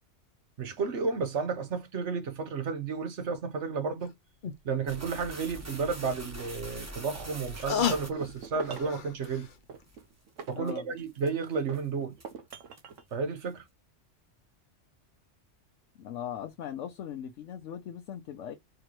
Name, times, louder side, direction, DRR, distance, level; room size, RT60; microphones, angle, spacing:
voice 1, 0.6-4.1 4.6-9.5 10.5-12.2 13.1-13.6, right 5 dB, 70° right, 1.3 m, -32 dB
sound 1, 4.0-4.1 4.4-4.6 6.4-9.6 9.9-10.0, left 7 dB, 45° left, 0.8 m, -34 dB
sound 2, 4.9-8.8 9.2-9.3 9.9-10.0 10.4-10.7 11.2-11.5 11.7-11.8 12.2-13.0, right 1 dB, 15° right, 1.0 m, -43 dB
sound 3, 8.0-9.0 9.7-11.2 11.7-13.1, right 6 dB, 90° right, 1.1 m, -45 dB
voice 2, 16.0-18.5, left 9 dB, 80° left, 1.1 m, -39 dB
4.5 x 2.9 x 3.0 m
omnidirectional pair, 1.2 m